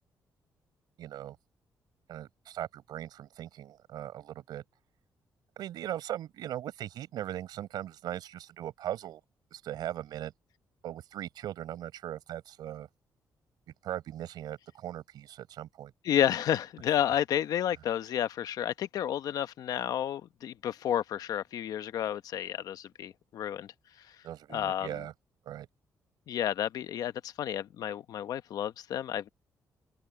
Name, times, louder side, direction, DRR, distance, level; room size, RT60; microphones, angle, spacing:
voice 1, 1.0-1.4 2.1-4.6 5.6-9.2 9.5-10.3 10.8-12.9 13.8-15.9 24.2-25.1 25.4-25.7, right 12 dB, 75° right, 6.8 m, -39 dB
voice 2, 16.0-23.7 24.5-25.0 26.3-29.3, left 10 dB, 65° left, 0.9 m, -31 dB
cardioid pair, 175°, 7 cm